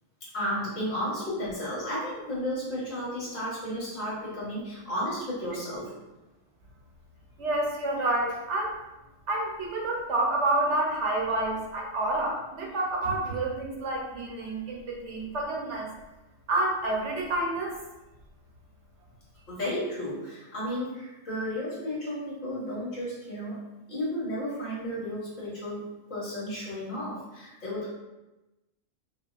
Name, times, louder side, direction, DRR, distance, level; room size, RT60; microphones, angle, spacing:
voice 1, 0.2-5.9 19.5-23.6 23.9-27.9, equal, 70° left, -8 dB, 1.7 m, -33 dB
voice 2, 7.4-8.8 9.3-15.9 16.5-17.8, right 2 dB, 65° right, -1 dB, 1.0 m, -28 dB
5.1 x 2.2 x 2.4 m, 1.0 s
omnidirectional pair, 1.3 m